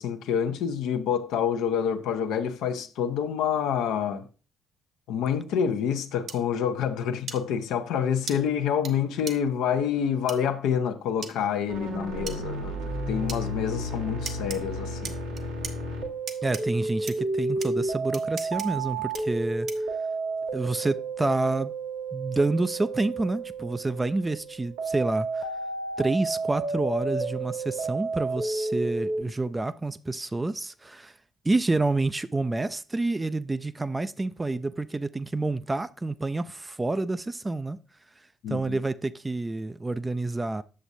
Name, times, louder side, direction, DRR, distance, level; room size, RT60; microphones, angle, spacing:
voice 1, 0.0-4.3 5.1-15.1 38.4-38.8, left 8 dB, 65° left, 0.6 m, -27 dB
sound 1, 6.3-6.4 7.3-7.4 8.3-8.4 8.8-8.9 9.3-9.4 10.3-10.4 11.2-11.3 12.3-12.4 13.3-13.4 14.2-14.6 15.0-15.7 16.3-16.6 17.1-17.2 17.6-17.7 18.1-18.7 19.1-19.2 19.7-19.9, right 5 dB, 55° right, 0.8 m, -36 dB
sound 2, 11.7-29.2, right 2 dB, 80° right, 1.4 m, -31 dB
voice 2, 16.4-19.7 20.5-21.7 22.1-25.5 26.0-31.1 31.4-37.8 38.5-40.6, right 2 dB, 20° right, 0.4 m, -28 dB
8.5 x 6.9 x 2.6 m
figure-of-eight pair, 45°, 0 cm